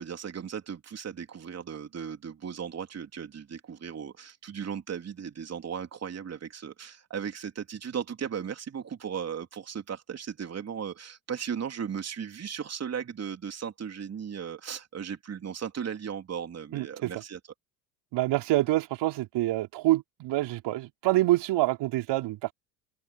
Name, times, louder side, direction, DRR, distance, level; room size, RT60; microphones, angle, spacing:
voice 1, 0.0-17.4, right 7 dB, 30° right, 3.4 m, -36 dB
voice 2, 16.7-17.1 18.1-22.5, right 17 dB, 55° right, 3.7 m, -26 dB
hypercardioid pair, 75°, 50 cm